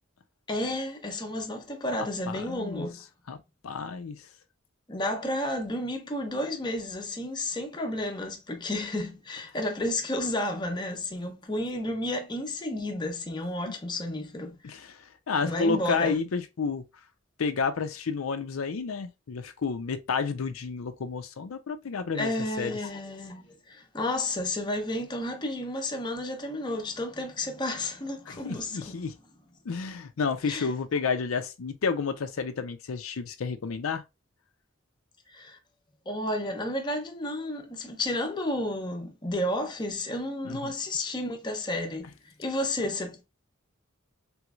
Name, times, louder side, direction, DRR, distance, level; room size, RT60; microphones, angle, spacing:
voice 1, 0.5-3.0 4.9-14.6 15.4-16.1 22.1-29.0 30.5-30.7 35.3-35.6 36.1-42.1 42.4-43.2, left 1 dB, 20° left, 0.6 m, -32 dB
voice 2, 2.3-2.9 3.3-3.4 3.6-4.2 13.7-13.8 14.6-16.8 17.4-22.3 22.6-22.8 28.3-29.1 29.7-34.0 40.4-40.7, left 5 dB, 85° left, 0.5 m, -30 dB
3.4 x 3.1 x 2.3 m
head